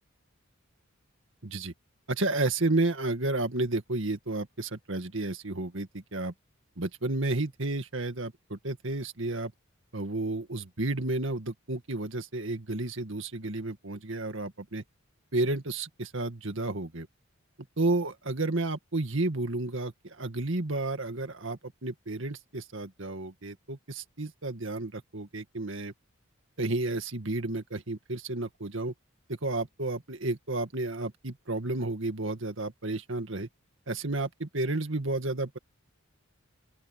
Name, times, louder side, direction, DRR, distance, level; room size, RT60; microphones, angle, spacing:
voice 1, 1.4-1.7 2.1-6.3 6.8-9.5 9.9-14.8 15.3-17.1 17.8-25.9 26.6-28.9 29.3-33.5 33.9-35.6, right 2 dB, 65° right, 2.0 m, -31 dB
open air
head